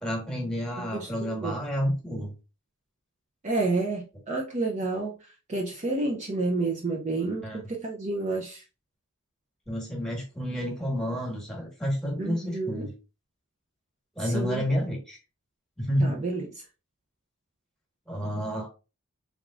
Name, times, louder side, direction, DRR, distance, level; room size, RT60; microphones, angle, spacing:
voice 1, 0.0-2.3 7.4-7.6 9.7-12.9 14.2-15.2 15.8-16.2 18.1-18.7, equal, 5° left, 1.4 m, -30 dB
voice 2, 0.8-1.6 3.4-5.2 5.5-8.6 12.2-12.9 14.2-14.6 16.0-16.5, right 3 dB, 30° right, 0.5 m, -30 dB
3.6 x 3.5 x 2.4 m
head